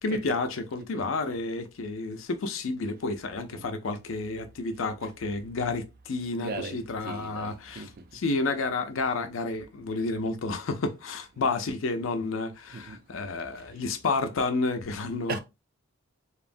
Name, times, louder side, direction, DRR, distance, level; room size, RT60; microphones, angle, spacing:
voice 1, 0.0-15.4, left 3 dB, 80° left, 0.5 m, -30 dB
voice 2, 6.4-7.9 12.7-13.0 15.3-15.4, right 3 dB, 45° right, 0.3 m, -38 dB
3.0 x 2.1 x 2.5 m
head